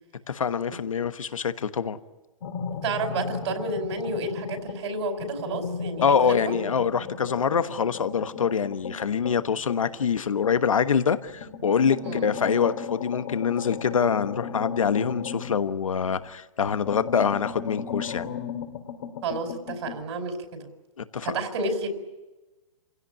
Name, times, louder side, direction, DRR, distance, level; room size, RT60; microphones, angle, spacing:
voice 1, 0.3-2.0 6.0-18.3 21.0-21.3, left 6 dB, 85° left, 1.3 m, -25 dB
sound 1, 2.4-4.9 5.2-10.8 11.3-16.3 16.6-20.0, left 6 dB, 65° left, 2.8 m, -36 dB
voice 2, 2.8-6.6 12.0-12.3 19.2-20.7 21.2-21.9, right 2 dB, 60° right, 4.9 m, -30 dB
28.0 x 16.5 x 9.9 m
hypercardioid pair, 125°, 17 cm